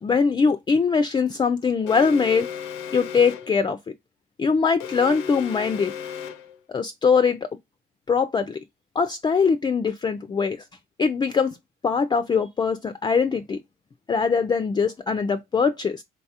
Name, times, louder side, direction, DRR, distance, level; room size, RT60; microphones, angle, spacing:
voice 1, 0.0-2.5 2.9-3.8 4.4-5.9 6.7-7.5 8.1-8.6 9.0-10.6 11.0-11.6 11.8-13.6 14.1-16.0, left 5 dB, 20° left, 0.4 m, -22 dB
Alarm, 1.9-3.6 4.8-6.6, left 7 dB, 85° left, 0.6 m, -35 dB
3.8 x 2.4 x 2.7 m
supercardioid pair, 90°, 20 cm